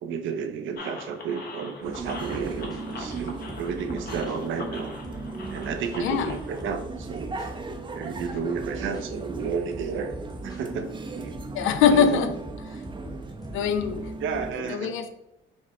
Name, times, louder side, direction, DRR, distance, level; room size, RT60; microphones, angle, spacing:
voice 1, 0.0-4.9 5.5-7.3 7.9-10.2 10.4-11.4 11.9-12.3 14.2-14.9, right 6 dB, 75° right, 7 dB, 0.6 m, -32 dB
sound 1, 0.8-6.6, left 2 dB, 50° left, 0.8 m, -42 dB
sound 2, 1.8-14.5, right 3 dB, 25° right, 0.5 m, -37 dB
sound 3, 2.0-4.5 5.0-7.5 8.0-10.6 11.3-14.0, equal, 20° left, 0.9 m, -43 dB
voice 2, 6.0-6.4 11.5-12.3 13.5-14.1 14.5-15.1, left 7 dB, 85° left, 8 dB, 0.5 m, -23 dB
4.8 x 2.1 x 4.1 m, 0.87 s
cardioid pair, 90°, 20 cm